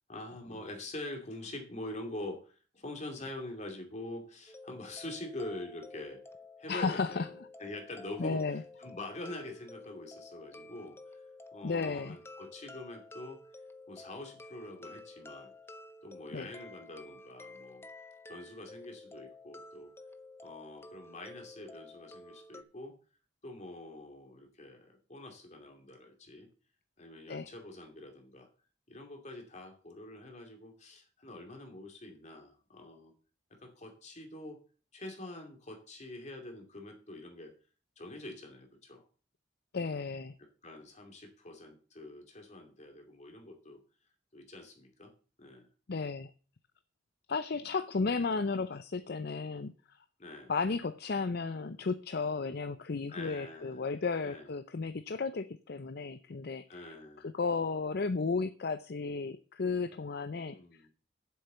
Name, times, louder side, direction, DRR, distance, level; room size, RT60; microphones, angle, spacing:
voice 1, 0.1-6.2 6.6-13.4 13.9-15.5 16.0-17.9 18.3-19.9 20.4-23.0 23.4-26.5 27.0-28.5 28.9-33.1 33.6-34.6 34.9-37.5 38.0-39.0 40.6-43.8 44.3-45.1 45.4-45.7 50.2-50.5 53.1-53.9 54.2-54.5 56.7-57.3 60.5-60.9, left 1 dB, 40° left, 3 dB, 2.5 m, -45 dB
sound 1, 4.5-22.6, left 2 dB, 15° left, 0.6 m, -51 dB
voice 2, 6.7-7.3 8.2-8.6 11.6-12.2 16.3-16.5 27.3-27.5 39.7-40.3 45.9-46.3 47.3-50.0 50.5-56.8 57.2-60.6, left 4 dB, 60° left, 11 dB, 0.6 m, -34 dB
7.9 x 6.8 x 8.0 m, 0.39 s
head